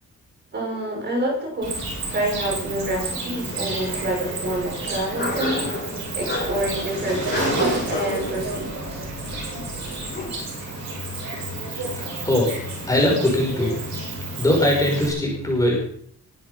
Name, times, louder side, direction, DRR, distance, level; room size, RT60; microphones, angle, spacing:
voice 1, 0.5-1.7 2.1-5.8 6.1-8.6 8.9-9.0, right 1 dB, 35° right, 0 dB, 6.4 m, -27 dB
Cricket, 1.6-15.1, right 2 dB, 65° right, 7.7 m, -30 dB
sound 1, 1.8-10.4, left 3 dB, 35° left, 5.3 m, -34 dB
voice 2, 11.9-12.6 12.8-13.8 14.4-15.8, left 1 dB, 10° left, -1 dB, 5.6 m, -21 dB
22.5 x 11.5 x 5.6 m, 0.62 s
wide cardioid pair, 180°, 30 cm